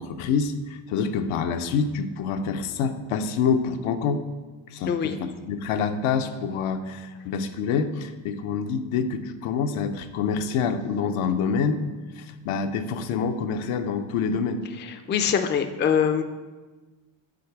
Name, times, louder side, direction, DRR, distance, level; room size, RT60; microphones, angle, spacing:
voice 1, 0.0-4.2 4.7-11.8 12.2-14.6, left 5 dB, 80° left, 7 dB, 0.7 m, -26 dB
voice 2, 4.9-5.2 14.8-16.2, left 7 dB, 25° left, 7 dB, 0.4 m, -24 dB
5.0 x 3.9 x 5.8 m, 1.3 s
cardioid pair, 95°, 49 cm